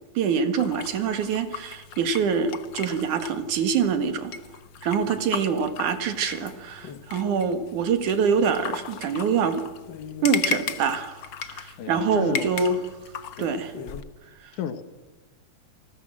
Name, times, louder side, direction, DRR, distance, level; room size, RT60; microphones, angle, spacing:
voice 1, 0.1-4.3 4.8-9.6 10.2-11.2 11.5-12.8 13.4-13.7, right 6 dB, 80° right, 8 dB, 3.3 m, -25 dB
sound 1, 0.6-14.0, left 7 dB, 55° left, 1.3 m, -37 dB
voice 2, 5.0-5.4 11.8-12.5 13.4-13.5 14.5-14.8, left 9 dB, 80° left, 10 dB, 3.0 m, -33 dB
28.5 x 19.5 x 7.6 m, 1.2 s
omnidirectional pair, 3.5 m